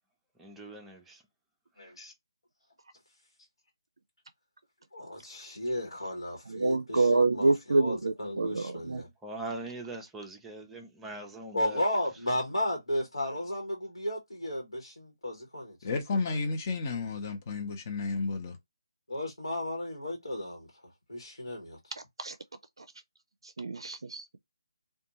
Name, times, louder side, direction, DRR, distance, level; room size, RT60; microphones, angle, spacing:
voice 1, 0.4-1.2 9.2-11.8, right 2 dB, 5° right, 0.5 m, -41 dB
voice 2, 1.8-2.1 4.9-9.1 11.5-15.8 19.1-20.7 21.1-21.8, left 1 dB, 75° left, 1.2 m, -34 dB
voice 3, 6.5-9.0 22.2-22.3 23.6-24.4, right 3 dB, 70° right, 0.4 m, -27 dB
voice 4, 15.8-18.6, left 4 dB, 30° left, 0.7 m, -32 dB
2.6 x 2.2 x 2.8 m
figure-of-eight pair, 150°, 3 cm